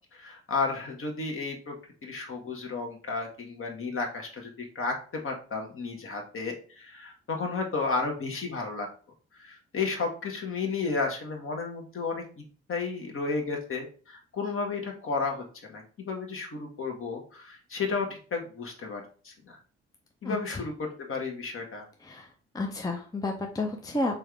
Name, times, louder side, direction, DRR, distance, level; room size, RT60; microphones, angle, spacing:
voice 1, 0.1-1.7 2.0-8.9 9.4-12.2 12.7-15.4 15.7-19.6 20.2-21.9, left 4 dB, 40° left, 1 dB, 1.3 m, -33 dB
voice 2, 20.2-20.6 22.0-22.3 22.5-24.2, left 2 dB, 10° left, 2 dB, 0.7 m, -31 dB
3.6 x 3.4 x 3.5 m, 0.40 s
figure-of-eight pair, 40°, 32 cm